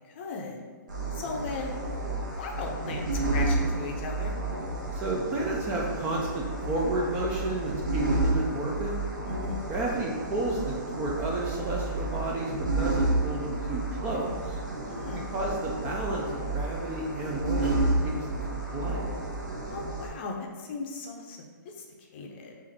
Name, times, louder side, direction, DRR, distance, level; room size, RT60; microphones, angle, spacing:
voice 1, 0.1-0.6 1.1-1.7 2.4-3.1 3.3-4.4 9.3-9.7 14.8-15.3 19.7-21.8 22.1-22.6, left 4 dB, 35° left, 1 dB, 0.6 m, -37 dB
sound 1, 0.9-20.1, right 2 dB, 65° right, 1.1 m, -31 dB
voice 2, 4.9-8.9 9.7-14.6 15.3-19.0, right 2 dB, 15° right, -2 dB, 0.4 m, -32 dB
4.9 x 2.6 x 4.1 m, 1.5 s
hypercardioid pair, 160°, 11 cm